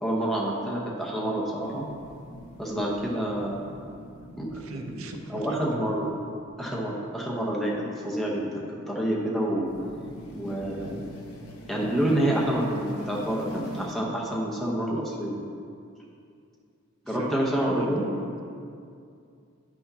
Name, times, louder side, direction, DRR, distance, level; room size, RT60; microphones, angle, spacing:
voice 1, 0.0-1.9 2.6-3.8 4.4-6.2 6.6-7.7 8.0-9.7 10.3-11.1 11.7-15.4 17.1-18.0, right 1 dB, ahead, -4 dB, 0.8 m, -28 dB
sound 1, 1.6-6.7 9.7-13.9, left 1 dB, 90° left, 0.8 m, -43 dB
voice 2, 4.5-5.6 17.1-18.4, right 2 dB, 70° right, 4 dB, 0.5 m, -40 dB
9.1 x 5.9 x 2.8 m, 2.4 s
head